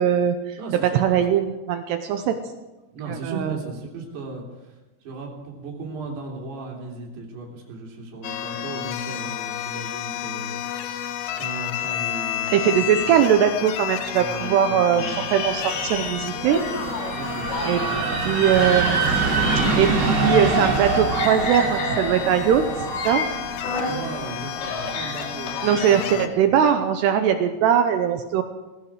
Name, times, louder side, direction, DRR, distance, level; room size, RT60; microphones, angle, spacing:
voice 1, 0.0-0.6 1.0-2.4 3.1-3.6 12.5-16.6 17.7-17.8 18.3-19.1 19.8-22.7 23.0-23.3 25.6-28.4, right 9 dB, 80° right, 7 dB, 2.6 m, -20 dB
voice 2, 0.6-1.4 2.3-2.4 2.9-13.2 14.2-15.3 17.1-18.2 23.9-26.6, right 3 dB, 60° right, -2 dB, 5.1 m, -36 dB
sound 1, 8.2-26.3, left 11 dB, 80° left, 3.4 m, -32 dB
sound 2, 12.4-14.5 14.9-17.1 17.5-20.9 21.1-24.1 24.4-26.1, left 3 dB, 60° left, 4.0 m, -32 dB
sound 3, 15.2-25.0, right 3 dB, 35° right, 2.6 m, -26 dB
18.0 x 16.0 x 4.8 m, 1.1 s
omnidirectional pair, 5.5 m